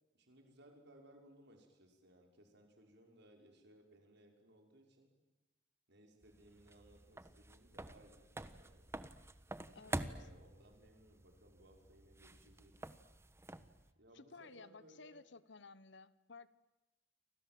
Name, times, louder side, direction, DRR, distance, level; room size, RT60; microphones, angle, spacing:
voice 1, 0.1-5.1 5.9-8.9 9.8-12.8 14.0-15.2, right 1 dB, 60° right, 3 dB, 5.7 m, -64 dB
sound 1, 6.2-13.9, right 1 dB, 15° right, 1.1 m, -48 dB
voice 2, 9.7-10.3 14.1-16.5, left 4 dB, 65° left, 16 dB, 1.1 m, -56 dB
30.0 x 25.0 x 7.8 m, 1.0 s
head